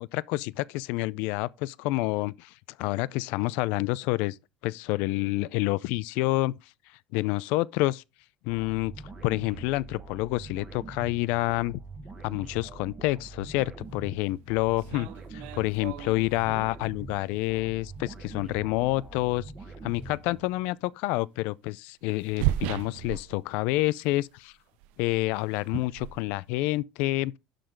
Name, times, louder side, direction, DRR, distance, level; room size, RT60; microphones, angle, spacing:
voice 1, 0.0-2.5 2.8-4.4 4.6-6.5 7.1-8.0 8.4-8.9 9.2-11.8 12.2-19.5 19.8-24.5 25.0-27.3, left 19 dB, 85° left, 0.4 m, -28 dB
sound 1, 8.5-20.8, right 3 dB, 20° right, 1.4 m, -44 dB
sound 2, 14.3-14.4 14.8-16.8 17.9-18.0 19.8-20.0 20.4-20.5 22.0-23.9 24.1-24.4 24.8-26.8, right 14 dB, 75° right, 0.5 m, -35 dB
11.5 x 3.9 x 4.5 m
cardioid pair, 165°, 2 cm